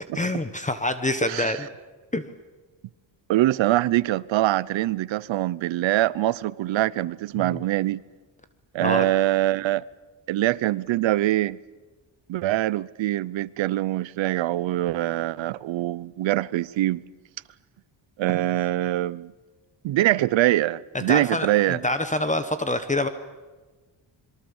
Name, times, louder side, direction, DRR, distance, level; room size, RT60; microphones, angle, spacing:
voice 1, 0.1-1.7 2.1-2.3 7.4-7.6 8.8-9.1 21.1-23.1, left 2 dB, 15° left, 1.2 m, -26 dB
voice 2, 1.2-1.6 3.3-8.0 8.7-9.9 10.3-11.6 12.3-17.0 18.2-19.3 19.8-21.9, right 15 dB, 90° right, 0.7 m, -24 dB
26.5 x 22.5 x 7.2 m
cardioid pair, 130°, 44 cm